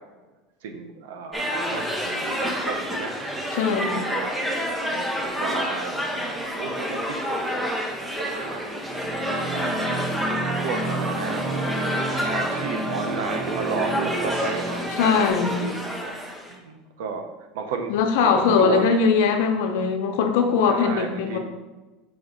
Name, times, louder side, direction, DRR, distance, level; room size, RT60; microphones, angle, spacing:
voice 1, 0.6-3.1 3.7-4.4 4.9-7.6 8.0-8.7 9.6-10.1 10.6-11.5 12.1-15.2 15.6-16.1 16.5-17.3 17.5-19.0 20.7-21.4, right 5 dB, 85° right, 5 dB, 0.8 m, -33 dB
sound 1, 1.3-16.5, equal, 5° right, 0.9 m, -29 dB
voice 2, 3.5-4.0 15.0-15.6 17.9-21.4, left 5 dB, 75° left, 5 dB, 0.8 m, -21 dB
sound 2, 8.9-15.3, right 2 dB, 40° right, 0.9 m, -30 dB
5.2 x 3.6 x 5.2 m, 1.2 s
supercardioid pair, 135°, 0 cm